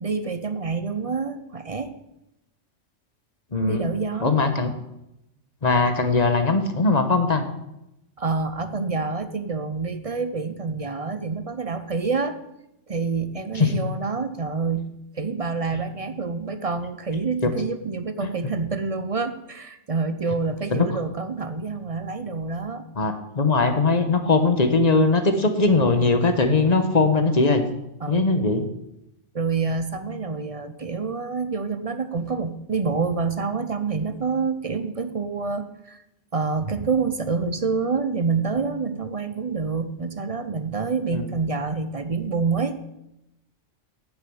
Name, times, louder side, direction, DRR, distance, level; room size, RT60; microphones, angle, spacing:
voice 1, 0.0-1.9 3.7-4.3 8.2-12.4 12.9-22.9 28.0-28.3 29.3-36.0 36.3-42.8, right 4 dB, 40° right, 11 dB, 0.6 m, -27 dB
voice 2, 3.5-3.8 4.2-4.7 5.6-7.4 13.5-13.7 17.4-17.5 20.7-20.8 23.0-27.6 28.1-28.6 41.1-41.3, left 3 dB, 35° left, 7 dB, 1.1 m, -20 dB
9.4 x 7.0 x 7.8 m, 0.88 s
omnidirectional pair, 1.3 m